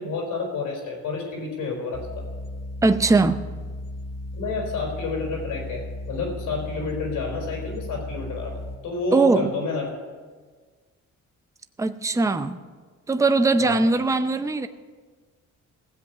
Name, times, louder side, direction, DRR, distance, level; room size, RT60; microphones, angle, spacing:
voice 1, 0.0-2.3 4.3-9.9 13.6-13.9, left 4 dB, 85° left, 1 dB, 4.3 m, -30 dB
sound 1, 1.9-8.8, left 1 dB, 55° left, 1.3 m, -35 dB
voice 2, 2.8-3.4 9.1-9.5 11.8-12.6 13.1-14.7, right 3 dB, 10° right, 9 dB, 0.6 m, -20 dB
16.5 x 7.9 x 6.7 m, 1.5 s
cardioid pair, 90°, 30 cm